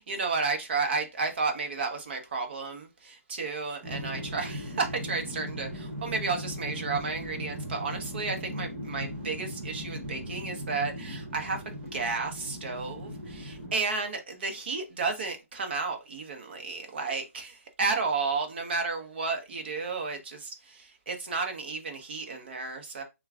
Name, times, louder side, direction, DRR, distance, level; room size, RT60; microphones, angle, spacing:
voice 1, 0.0-23.0, right 4 dB, 45° right, 1.0 m, -32 dB
sound 1, 3.8-13.7, equal, 15° right, 0.9 m, -38 dB
6.9 x 2.4 x 2.4 m
figure-of-eight pair, 155°, 8 cm